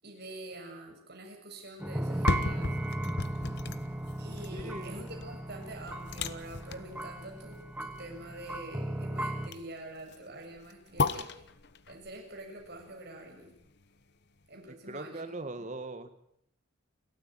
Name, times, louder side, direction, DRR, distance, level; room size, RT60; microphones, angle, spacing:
voice 1, 0.0-2.8 4.2-11.3 11.9-13.5 14.5-15.7, right 1 dB, 50° right, 2 dB, 7.1 m, -46 dB
sound 1, 1.8-9.5, right 1 dB, 10° right, 1.3 m, -36 dB
sound 2, 2.0-14.0 14.4-14.5, left 3 dB, 55° left, 1.0 m, -37 dB
voice 2, 4.5-5.0 14.7-16.1, right 2 dB, 35° right, 9 dB, 1.9 m, -40 dB
29.0 x 14.0 x 9.1 m, 0.75 s
head